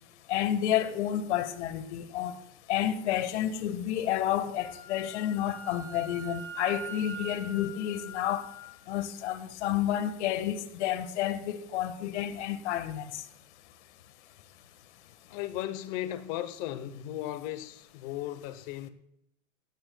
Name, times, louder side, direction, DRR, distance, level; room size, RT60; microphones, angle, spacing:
voice 1, 0.3-2.3 2.7-8.4 8.9-13.1, left 11 dB, 60° left, 1.7 m, -30 dB
Wind instrument woodwind instrument, 4.6-8.8, right 3 dB, 5° left, 2.7 m, -43 dB
voice 2, 15.3-18.9, left 13 dB, 35° left, 1.0 m, -36 dB
18.0 x 16.0 x 2.3 m
supercardioid pair, 150°, 39 cm